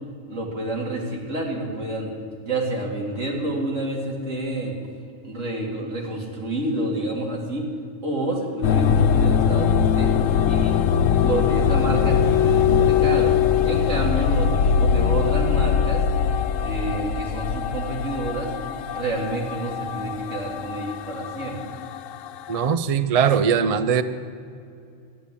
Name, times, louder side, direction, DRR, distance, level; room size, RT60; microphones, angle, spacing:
voice 1, 0.3-2.1 2.4-4.7 5.2-7.7 8.0-10.1 10.5-10.8 11.2-13.3 13.6-16.0 16.6-18.5 18.9-21.7, right 1 dB, 75° right, -1 dB, 2.9 m, -28 dB
sound 1, 8.6-22.7, left 7 dB, 85° left, 1.0 m, -21 dB
voice 2, 22.5-24.0, right 7 dB, 45° right, 12 dB, 0.4 m, -20 dB
12.5 x 10.5 x 8.4 m, 2.5 s
omnidirectional pair, 1.3 m